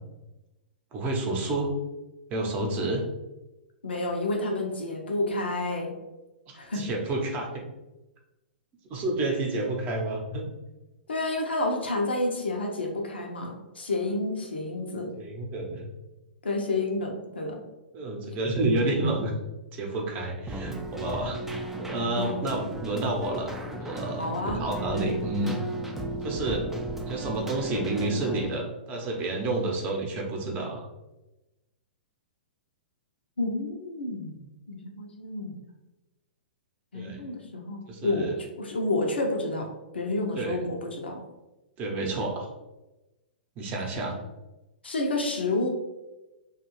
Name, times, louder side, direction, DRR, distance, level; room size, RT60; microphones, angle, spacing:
voice 1, 0.9-1.7 2.3-3.0 6.5-7.6 8.9-10.5 15.2-15.8 17.9-19.3 19.7-21.4 21.8-23.5 23.8-25.6 26.2-26.7 27.1-30.9 36.9-37.3 37.9-38.3 40.3-40.6 41.8-42.5 43.6-44.2, right 2 dB, 30° right, 0 dB, 0.7 m, -30 dB
voice 2, 3.8-5.9 6.5-6.9 11.1-15.1 16.4-17.6 22.2-22.5 24.2-24.6 33.4-34.4 34.7-35.5 36.9-38.3 38.6-39.7 39.9-41.2 44.8-45.7, left 2 dB, 85° left, 1 dB, 0.6 m, -29 dB
Keyboard (musical), 20.5-28.5, right 1 dB, 5° right, 0.3 m, -35 dB
2.6 x 2.3 x 3.0 m, 1.0 s
hypercardioid pair, 120°, 6 cm